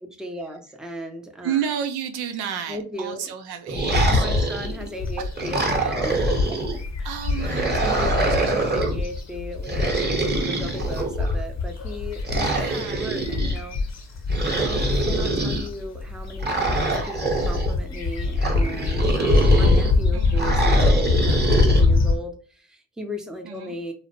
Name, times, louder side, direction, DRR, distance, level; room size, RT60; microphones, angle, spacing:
voice 1, 0.2-1.6 2.7-3.3 4.0-7.1 7.8-13.8 14.4-23.9, equal, ahead, 0.6 m, -36 dB
voice 2, 1.4-4.5 5.2-5.3 7.0-8.5 12.4-13.1 20.1-20.5 23.4-23.7, right 8 dB, 75° right, 0.5 m, -32 dB
sound 1, 3.7-4.9 5.4-6.8 7.4-9.0 9.6-11.3 12.2-13.6 14.3-15.7 16.4-17.7 18.4-19.9 20.4-21.8, right 3 dB, 25° right, 0.9 m, -25 dB
sound 2, 3.8-22.2, left 3 dB, 40° left, 0.8 m, -24 dB
2.4 x 2.1 x 2.8 m
supercardioid pair, 50°, 39 cm